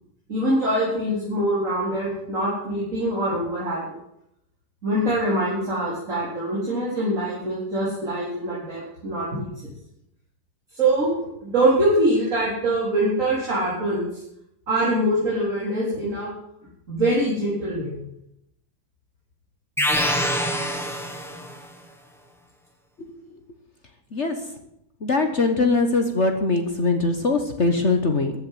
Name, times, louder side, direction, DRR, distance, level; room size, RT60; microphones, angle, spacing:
voice 1, 0.3-4.0 4.8-9.7 10.7-11.1 11.4-14.1 14.7-16.3 16.9-17.9, right 1 dB, 40° right, -6 dB, 4.4 m, -24 dB
sound 1, 19.8-21.7, equal, ahead, 1.3 m, -25 dB
voice 2, 25.0-28.3, left 3 dB, 40° left, 6 dB, 1.3 m, -21 dB
14.0 x 7.3 x 9.2 m, 0.79 s
omnidirectional pair, 2.2 m